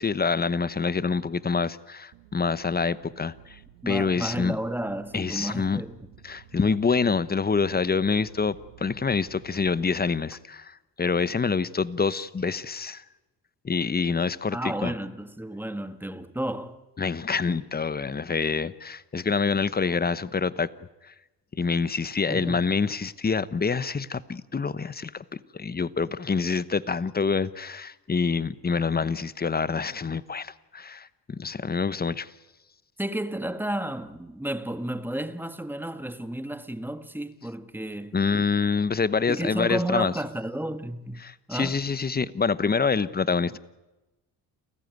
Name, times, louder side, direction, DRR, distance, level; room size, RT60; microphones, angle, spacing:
voice 1, 0.0-3.6 3.9-4.6 5.1-5.8 6.2-13.0 13.6-14.9 17.0-20.7 21.1-21.2 21.5-25.2 25.5-32.3 38.1-40.1 41.2-43.6, left 5 dB, 20° left, 1.0 m, -26 dB
sound 1, 2.1-10.1, right 12 dB, 85° right, 1.7 m, -53 dB
voice 2, 3.8-6.0 14.5-16.8 22.3-22.6 33.0-38.2 39.3-41.2 41.5-41.8, right 1 dB, 5° right, 1.6 m, -32 dB
29.0 x 14.0 x 9.4 m
cardioid pair, 80°, 42 cm